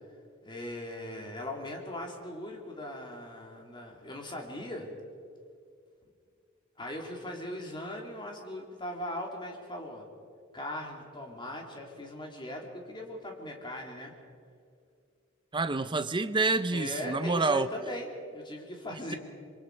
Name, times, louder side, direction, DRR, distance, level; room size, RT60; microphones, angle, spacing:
voice 1, 0.4-4.9 6.8-10.1 10.5-14.1 16.7-19.2, left 1 dB, 25° left, 1 dB, 3.0 m, -39 dB
voice 2, 15.5-17.7, right 3 dB, 25° right, 11 dB, 0.7 m, -28 dB
26.5 x 23.5 x 4.7 m, 2.3 s
head